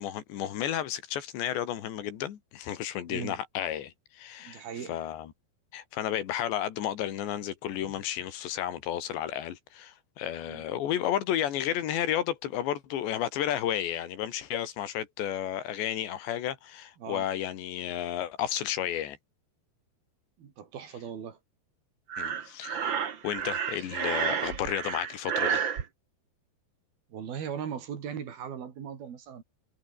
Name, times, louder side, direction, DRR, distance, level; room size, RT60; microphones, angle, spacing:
voice 1, 0.0-4.6 4.9-5.3 5.7-19.2 22.2-25.6, left 11 dB, 85° left, 4.4 m, -32 dB
voice 2, 3.1-3.4 4.4-5.0 10.5-10.6 17.0-17.3 20.4-21.4 27.1-29.4, right 8 dB, 60° right, 4.7 m, -38 dB
Breathing, 22.1-25.8, right 7 dB, 80° right, 1.0 m, -30 dB
omnidirectional pair, 5.0 m